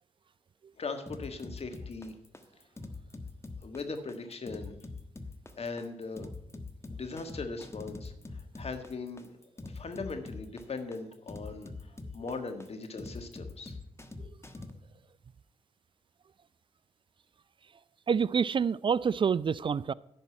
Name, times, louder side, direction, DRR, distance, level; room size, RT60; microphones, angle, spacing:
voice 1, 0.8-2.1 3.6-4.7 5.5-6.3 6.9-8.1 8.6-9.4 9.6-11.7 12.1-13.8, left 4 dB, 50° left, 1.6 m, -39 dB
sound 1, 1.1-14.7, left 3 dB, 20° left, 1.3 m, -43 dB
voice 2, 18.1-19.9, right 6 dB, 40° right, 0.3 m, -27 dB
11.0 x 5.3 x 8.5 m
hypercardioid pair, 40°, 14 cm